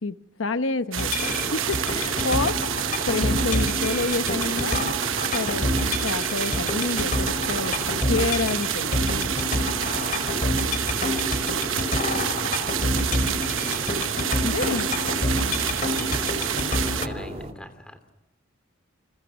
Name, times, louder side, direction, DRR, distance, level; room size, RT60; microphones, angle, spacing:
voice 1, 0.0-2.5 3.1-4.8 5.3-9.0 14.4-14.9, left 3 dB, 75° left, 11 dB, 0.9 m, -28 dB
sound 1, 0.9-17.1, right 10 dB, 75° right, 1.0 m, -28 dB
sound 2, 1.0-17.1, left 1 dB, 40° left, 5.1 m, -28 dB
sound 3, 1.2-17.5, right 1 dB, 30° right, 2.8 m, -36 dB
voice 2, 11.0-12.9 16.0-18.1, equal, 5° left, 8 dB, 3.1 m, -41 dB
29.5 x 27.5 x 6.0 m, 0.97 s
head